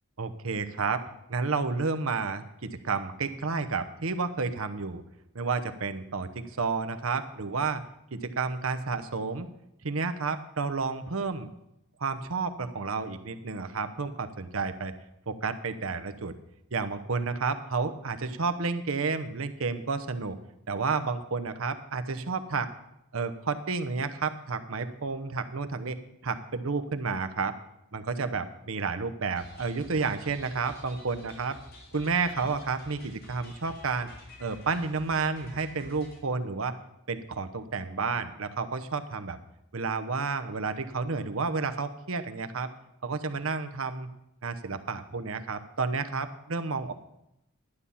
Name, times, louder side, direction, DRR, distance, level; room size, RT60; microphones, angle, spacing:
voice 1, 0.2-1.0 1.3-5.0 5.3-7.8 8.1-9.5 9.8-11.5 12.0-14.9 15.3-16.3 16.7-20.4 20.7-22.7 23.1-27.6 27.9-31.6 31.9-34.1 34.4-36.7 37.1-39.4 39.7-42.7 43.0-44.1 44.4-46.9, right 4 dB, 75° right, 9 dB, 0.9 m, -31 dB
sound 1, 29.4-36.2, left 1 dB, 45° left, 2.7 m, -50 dB
11.5 x 8.5 x 5.6 m, 0.85 s
head